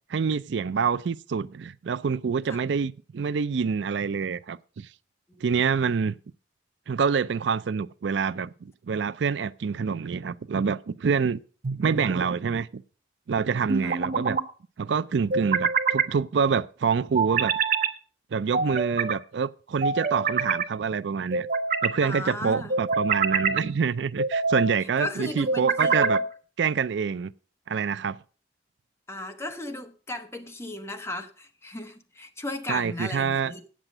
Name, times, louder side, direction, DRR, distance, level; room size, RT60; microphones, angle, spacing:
voice 1, 0.1-4.9 5.4-6.2 6.9-11.4 11.7-12.8 13.3-14.4 14.8-17.5 18.3-21.5 21.8-26.2 26.6-27.3 27.7-28.2 32.7-33.5, right 6 dB, 75° right, 0.4 m, -26 dB
voice 2, 5.3-5.8 13.8-13.9 22.0-22.7 25.0-26.2 29.1-33.6, left 1 dB, 15° left, 1.1 m, -36 dB
sound 1, 11.6-12.3 13.7-14.4 15.3-16.1 17.1-17.9 18.5-19.2 19.8-20.7 21.3-22.0 22.7-23.6 24.2-24.7 25.5-26.3, right 4 dB, 50° right, 0.9 m, -25 dB
9.0 x 7.5 x 6.5 m
head